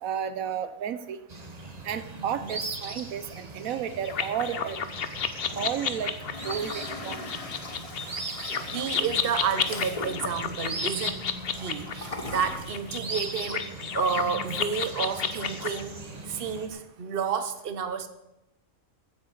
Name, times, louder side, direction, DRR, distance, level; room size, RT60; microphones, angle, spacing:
voice 1, 0.0-1.2 1.8-4.8 5.6-6.1 6.4-7.3, right 8 dB, 80° right, 12 dB, 1.1 m, -32 dB
sound 1, 1.3-16.7, right 3 dB, 30° right, 1.3 m, -40 dB
voice 2, 2.1-2.5 8.3-11.2 11.5-13.7 13.9-16.0 16.3-18.1, right 6 dB, 45° right, 10 dB, 1.1 m, -31 dB
sound 2, 4.0-15.8, left 7 dB, 50° left, 0.9 m, -32 dB
Toilet flush, 5.3-13.5, left 3 dB, 25° left, 1.1 m, -42 dB
15.0 x 8.4 x 6.4 m, 0.93 s
omnidirectional pair, 1.4 m